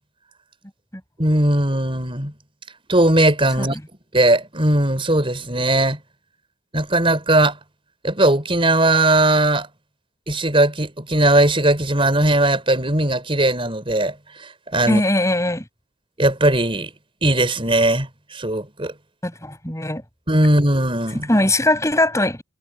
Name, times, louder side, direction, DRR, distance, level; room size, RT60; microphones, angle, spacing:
voice 1, 1.2-2.3 2.9-3.8 4.1-6.0 6.7-7.6 8.0-9.7 10.3-14.1 14.7-15.0 16.2-16.9 17.2-18.9 20.3-21.3, right 1 dB, 25° right, 5.1 m, -18 dB
voice 2, 14.9-15.7 19.2-20.0 21.3-22.4, left 1 dB, 15° left, 7.7 m, -20 dB
head